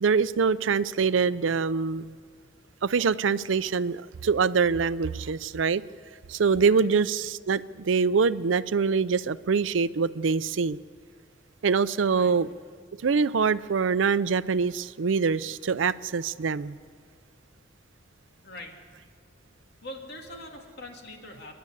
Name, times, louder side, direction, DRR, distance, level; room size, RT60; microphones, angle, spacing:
voice 1, 0.0-2.1 2.8-5.8 6.3-10.8 11.6-12.5 13.0-16.8, right 5 dB, 75° right, 0.5 m, -24 dB
voice 2, 18.4-18.7 19.8-21.6, left 1 dB, 60° left, 2.7 m, -43 dB
28.0 x 11.5 x 8.4 m
head